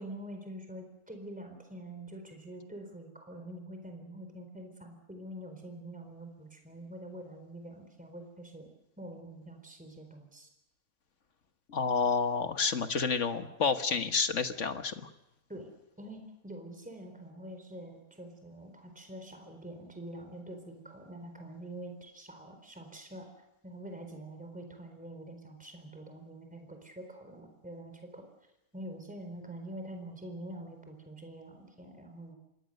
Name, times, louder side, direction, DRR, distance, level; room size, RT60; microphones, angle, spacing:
voice 1, 0.0-8.7 9.0-10.5 15.5-15.7 16.0-23.3 23.6-28.2 28.7-32.3, right 1 dB, 5° right, 5 dB, 4.1 m, -45 dB
voice 2, 11.7-15.1, left 5 dB, 55° left, 8 dB, 1.6 m, -29 dB
26.0 x 21.0 x 6.7 m, 0.88 s
omnidirectional pair, 1.6 m